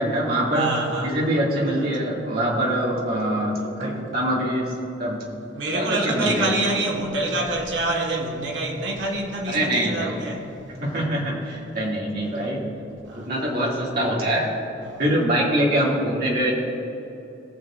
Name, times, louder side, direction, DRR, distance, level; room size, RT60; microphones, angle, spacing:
voice 1, 0.0-0.7 1.0-4.7 5.0-5.2 5.7-6.5 9.5-10.3 10.8-12.7 13.2-14.5 15.0-16.5, right 1 dB, 50° right, 2.3 m, -24 dB
voice 2, 0.5-1.1 1.7-1.9 3.5-4.1 5.5-11.1 12.3-12.5 13.0-13.3 14.8-15.0, right 2 dB, 75° right, 1.5 m, -27 dB
20.5 x 7.0 x 2.5 m
head